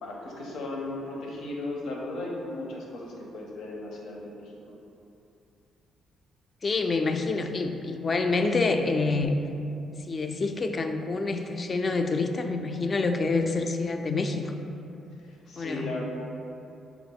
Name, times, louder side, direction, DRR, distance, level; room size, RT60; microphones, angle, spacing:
voice 1, 0.0-4.5 15.2-16.0, left 2 dB, 75° left, -2 dB, 0.7 m, -36 dB
voice 2, 6.6-9.4 10.1-14.6 15.6-15.9, left 3 dB, 35° left, 6 dB, 0.3 m, -27 dB
5.5 x 2.0 x 4.0 m, 2.7 s
cardioid pair, 90°, 0 cm